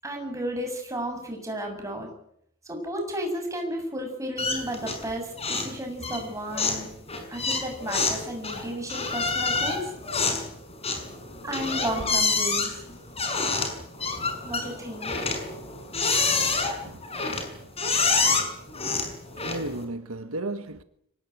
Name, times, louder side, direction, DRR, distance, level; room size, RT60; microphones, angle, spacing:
voice 1, 0.0-2.1 2.7-6.9 7.3-9.9 11.4-12.8 14.4-15.1, right 1 dB, 15° right, 7.6 m, -33 dB
sound 1, 4.4-5.1 5.4-5.8 6.0-19.8, left 4 dB, 30° left, 5.9 m, -27 dB
voice 2, 18.9-20.8, right 2 dB, 75° right, 1.5 m, -35 dB
24.5 x 18.5 x 9.4 m
head